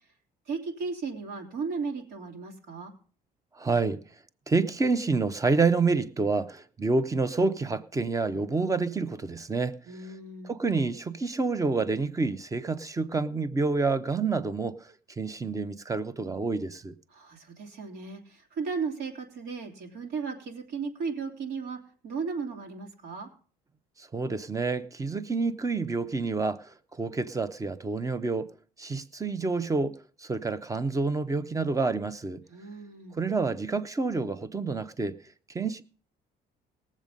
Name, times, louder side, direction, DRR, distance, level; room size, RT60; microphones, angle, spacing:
voice 1, 0.5-2.9 9.9-10.6 17.1-21.8 22.0-23.3 32.5-33.2, right 5 dB, 75° right, 3.1 m, -35 dB
voice 2, 3.6-4.0 4.5-9.8 10.4-16.9 24.1-28.5 28.8-32.4 33.2-35.2 35.5-35.8, right 4 dB, 20° right, 0.8 m, -28 dB
18.5 x 7.5 x 5.3 m
cardioid pair, 110°, 17 cm